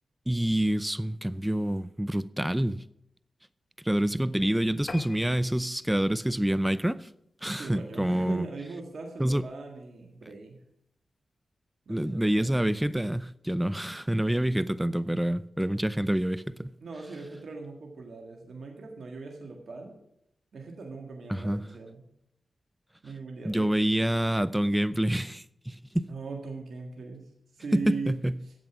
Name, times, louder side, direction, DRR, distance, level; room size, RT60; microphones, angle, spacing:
voice 1, 0.3-2.8 3.8-7.1 7.4-8.4 9.2-9.4 11.9-16.7 21.3-21.6 23.4-26.1 27.7-28.4, right 1 dB, 10° right, 0.6 m, -27 dB
sound 1, 4.9-7.6 8.1-8.3 8.7-8.8 9.1-9.2 9.5-9.6, left 3 dB, 50° left, 1.1 m, -46 dB
voice 2, 7.5-10.6 11.9-12.5 16.8-20.0 20.5-22.0 23.0-23.7 26.1-28.1, right 4 dB, 70° right, 1.8 m, -40 dB
11.0 x 7.7 x 6.0 m
supercardioid pair, 40°, 0 cm